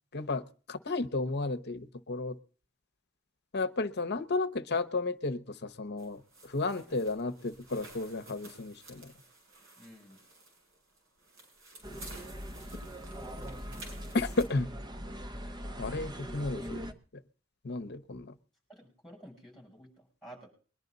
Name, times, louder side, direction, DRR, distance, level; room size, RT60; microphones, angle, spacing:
voice 1, 0.1-2.4 3.5-9.1 14.1-14.7 15.8-16.9 17.6-18.3, left 3 dB, 55° left, 11 dB, 0.9 m, -33 dB
sound 1, 6.0-14.4, right 1 dB, 85° right, 5.7 m, -52 dB
voice 2, 9.8-10.2 18.7-20.5, right 1 dB, ahead, -1 dB, 7.1 m, -52 dB
sound 2, 11.8-16.9, equal, 20° right, 1.1 m, -41 dB
22.0 x 10.5 x 4.0 m, 0.40 s
head